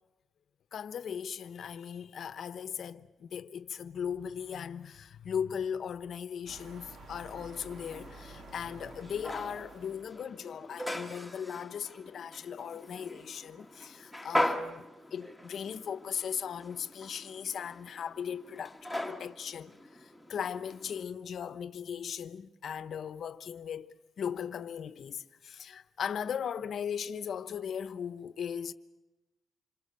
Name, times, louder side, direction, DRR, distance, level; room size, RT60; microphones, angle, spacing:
voice 1, 0.7-14.9 15.1-28.7, left 8 dB, 60° left, 1.0 m, -38 dB
sound 1, 6.5-10.2, right 2 dB, 65° right, 2.8 m, -50 dB
sound 2, 7.3-21.0, left 1 dB, 5° right, 1.8 m, -40 dB
27.0 x 25.0 x 6.9 m
cardioid pair, 140°, 0 cm